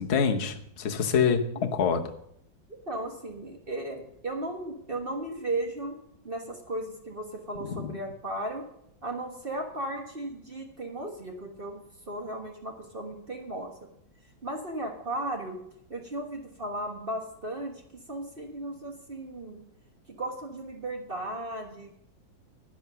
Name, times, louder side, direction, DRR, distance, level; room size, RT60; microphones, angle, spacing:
voice 1, 0.0-2.1 7.6-7.9, left 6 dB, 45° left, 4 dB, 1.0 m, -26 dB
voice 2, 2.9-6.0 6.2-8.6 9.0-13.7 14.4-15.6 15.9-19.6 20.1-22.1, right 1 dB, 30° right, 2 dB, 1.5 m, -36 dB
11.0 x 9.5 x 5.7 m, 0.73 s
omnidirectional pair, 2.0 m